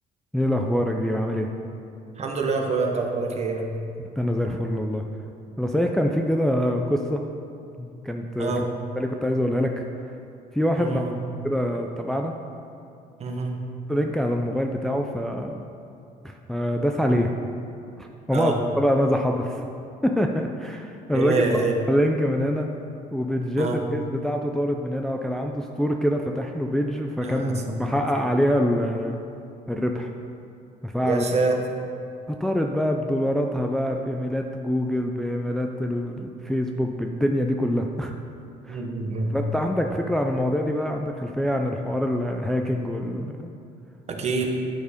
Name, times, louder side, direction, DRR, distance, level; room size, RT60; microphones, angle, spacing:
voice 1, 0.3-1.5 4.2-5.0 5.6-7.2 7.8-8.5 9.0-9.8 10.5-11.0 11.4-12.3 13.9-15.6 16.2-17.3 18.0-19.7 20.0-22.7 23.1-29.2 29.7-30.1 30.8-31.2 32.3-38.1 38.6-38.8 39.3-43.5, equal, ahead, 2 dB, 0.4 m, -25 dB
voice 2, 2.2-3.7 8.4-8.7 10.8-11.1 13.2-13.6 18.3-18.6 21.1-21.7 23.6-23.8 27.2-27.9 31.0-31.5 38.7-39.4 44.1-44.5, right 3 dB, 40° right, 2 dB, 1.0 m, -26 dB
9.6 x 4.4 x 5.1 m, 2.6 s
cardioid pair, 110°, 17 cm